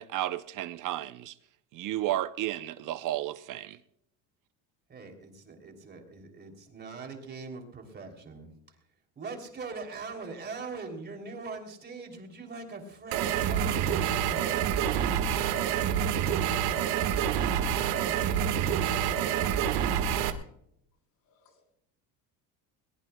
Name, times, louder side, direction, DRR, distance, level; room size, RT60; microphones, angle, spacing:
voice 1, 0.0-1.3 1.7-3.8, right 14 dB, 55° right, 0.7 m, -33 dB
voice 2, 4.9-8.5 9.2-15.7 17.3-19.7, right 4 dB, 25° right, 3.1 m, -43 dB
sound 1, 13.1-20.3, right 9 dB, 85° right, 1.7 m, -27 dB
voice 3, 18.9-20.1, left 4 dB, 65° left, 3.9 m, -51 dB
21.5 x 20.0 x 2.3 m
cardioid pair, 150°, 38 cm